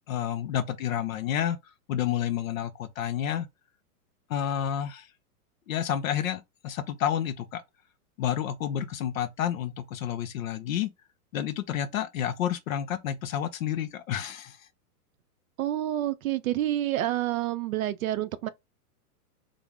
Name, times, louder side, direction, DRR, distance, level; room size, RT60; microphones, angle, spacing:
voice 1, 0.1-1.6 1.9-3.5 4.3-5.1 5.7-7.6 8.2-10.9 11.3-14.6, left 10 dB, 60° left, 0.6 m, -30 dB
voice 2, 15.6-18.5, right 13 dB, 65° right, 0.5 m, -28 dB
2.9 x 2.0 x 3.5 m
supercardioid pair, 160°, 46 cm